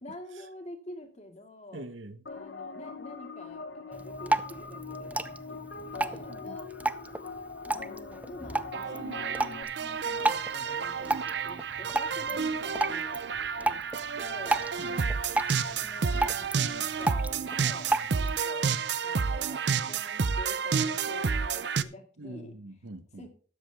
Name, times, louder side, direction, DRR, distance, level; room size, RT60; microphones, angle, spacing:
voice 1, 0.0-1.9 2.3-5.6 5.9-6.7 7.6-13.3 13.6-13.8 14.2-15.2 15.6-18.8 19.0-22.6 23.2-23.3, left 1 dB, 35° left, 2.3 m, -47 dB
voice 2, 1.7-2.2 6.3-6.6 12.1-12.4 14.8-15.0 22.2-23.3, right 1 dB, 90° right, 1.2 m, -44 dB
sound 1, 2.3-9.6, left 4 dB, 65° left, 1.0 m, -42 dB
Drip, 3.9-18.4, right 2 dB, 10° right, 0.4 m, -34 dB
sound 2, 8.7-21.8, right 5 dB, 60° right, 0.6 m, -30 dB
13.0 x 10.0 x 3.5 m
head